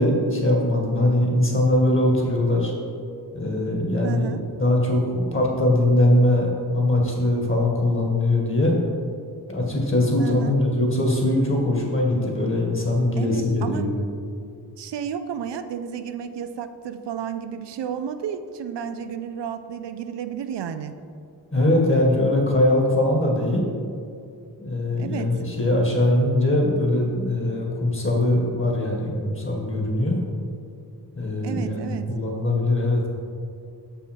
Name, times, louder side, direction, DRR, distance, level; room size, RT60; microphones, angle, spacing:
voice 1, 0.0-2.7 3.3-8.8 9.5-13.9 21.5-23.6 24.6-30.2 31.2-33.0, left 1 dB, 30° left, -1 dB, 1.9 m, -21 dB
voice 2, 4.0-4.4 10.2-10.6 13.2-13.9 14.8-20.9 25.0-25.3 31.4-32.1, right 8 dB, 85° right, 9 dB, 0.5 m, -32 dB
6.7 x 5.6 x 4.6 m, 2.4 s
cardioid pair, 50°, 41 cm